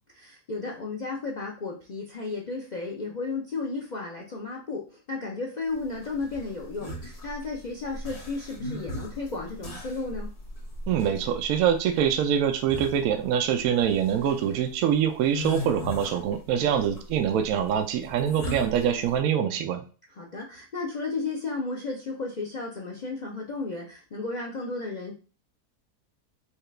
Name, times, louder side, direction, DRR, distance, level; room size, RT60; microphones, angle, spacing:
voice 1, 0.2-10.3 16.5-17.0 20.1-25.1, left 3 dB, 75° left, -2 dB, 0.4 m, -34 dB
sound 1, 5.8-19.2, equal, 30° left, 0.8 m, -38 dB
voice 2, 10.9-19.8, right 8 dB, 70° right, 7 dB, 0.9 m, -24 dB
4.7 x 2.3 x 3.2 m, 0.36 s
omnidirectional pair, 1.7 m